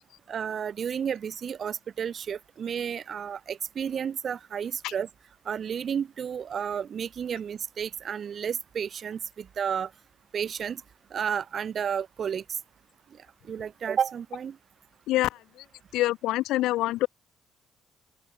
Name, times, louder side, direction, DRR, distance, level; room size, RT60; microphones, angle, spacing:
voice 1, 0.3-5.1 5.4-9.9 10.3-10.8 11.1-12.4 13.5-14.6, right 7 dB, 50° right, 2.9 m, -31 dB
voice 2, 15.9-17.1, left 16 dB, 65° left, 1.5 m, -25 dB
open air
figure-of-eight pair, 45°, 0 cm